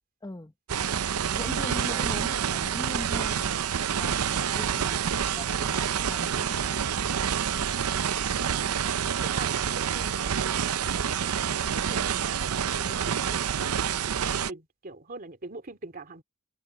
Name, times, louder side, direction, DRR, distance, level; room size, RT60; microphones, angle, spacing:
voice 1, 0.2-0.5 1.3-3.5 4.0-5.0 5.3-6.8, left 1 dB, 15° left, 1.0 m, -40 dB
sound 1, 0.7-14.5, right 8 dB, 85° right, 0.6 m, -28 dB
voice 2, 8.2-8.6 9.2-13.7 14.0-16.2, right 3 dB, 40° right, 2.7 m, -44 dB
head